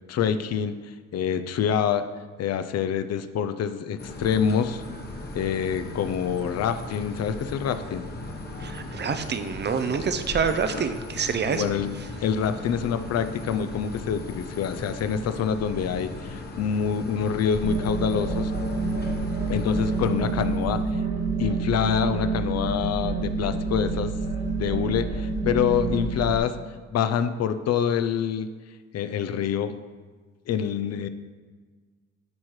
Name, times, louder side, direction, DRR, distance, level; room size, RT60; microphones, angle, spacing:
voice 1, 0.1-0.7 1.1-2.0 2.4-4.8 5.3-8.1 11.5-11.9 12.2-18.5 19.5-20.8 21.4-24.1 24.6-26.6 26.9-28.5 28.9-29.8 30.5-31.1, left 8 dB, 55° left, 10 dB, 0.5 m, -26 dB
sound 1, 4.0-21.0, left 2 dB, 35° left, 1.1 m, -37 dB
voice 2, 8.6-11.7, right 6 dB, 35° right, 9 dB, 0.5 m, -27 dB
sound 2, 17.6-26.4, right 3 dB, 60° right, 2.0 m, -28 dB
10.5 x 4.4 x 3.2 m, 1.4 s
cardioid pair, 90°, 30 cm